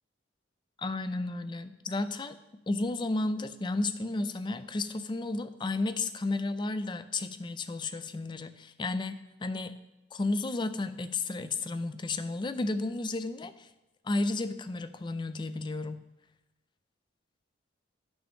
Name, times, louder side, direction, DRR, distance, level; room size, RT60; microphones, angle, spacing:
voice 1, 0.8-2.4 2.7-9.8 10.1-13.7 14.0-16.0, left 2 dB, 25° left, 12 dB, 0.4 m, -32 dB
12.0 x 6.1 x 3.5 m, 0.98 s
head